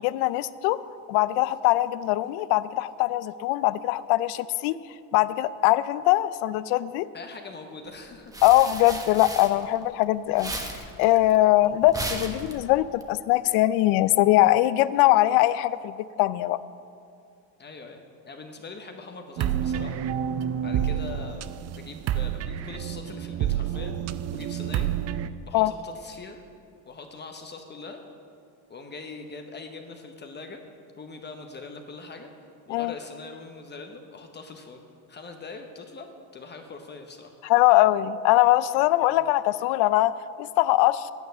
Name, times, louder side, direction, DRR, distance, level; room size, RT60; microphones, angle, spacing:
voice 1, 0.0-0.8 1.1-4.8 5.1-7.1 8.4-10.5 11.0-16.6 25.5-25.7 32.7-32.9 37.4-41.1, left 16 dB, 70° left, 16 dB, 0.5 m, -22 dB
voice 2, 7.1-8.3 11.6-11.8 17.6-20.0 20.6-24.0 24.3-24.9 25.4-26.4 26.8-28.0 28.7-30.6 31.0-32.3 32.7-34.8 35.1-37.4 39.1-39.2, left 3 dB, 25° left, 4 dB, 0.8 m, -42 dB
sound 1, 8.0-10.0 10.3-13.0, right 1 dB, 10° right, 1.0 m, -36 dB
sound 2, 19.4-25.3, right 9 dB, 40° right, 0.4 m, -29 dB
9.3 x 8.6 x 6.8 m, 2.5 s
supercardioid pair, 120°, 41 cm